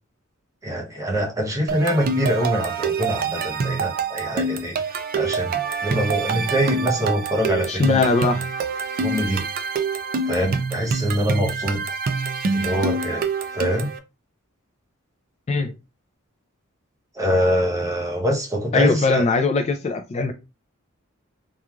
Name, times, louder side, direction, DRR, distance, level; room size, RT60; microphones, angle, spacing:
voice 1, 0.6-4.8 5.1-5.5 5.8-8.0 9.0-9.4 10.2-11.8 12.5-13.3 13.5-13.9 17.1-19.2, equal, 15° right, 0.7 m, -24 dB
sound 1, 1.7-14.0, right 4 dB, 45° right, 0.3 m, -26 dB
voice 2, 7.7-8.4 15.5-15.7 18.7-20.3, left 3 dB, 30° left, 0.3 m, -20 dB
3.0 x 2.3 x 2.3 m
head